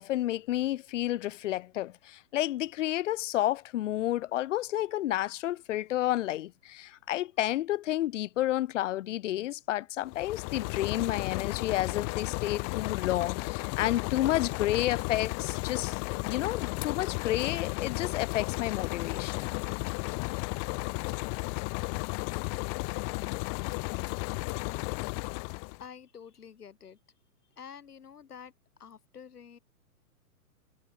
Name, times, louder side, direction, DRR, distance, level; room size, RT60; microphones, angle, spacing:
voice 1, 0.0-19.6, left 14 dB, 55° left, 1.1 m, -31 dB
sound 1, 10.0-25.8, left 40 dB or more, 30° left, 1.4 m, -34 dB
voice 2, 25.2-27.0 27.5-28.5 28.8-29.6, left 7 dB, 85° left, 5.9 m, -49 dB
hypercardioid pair, 140°, 45 cm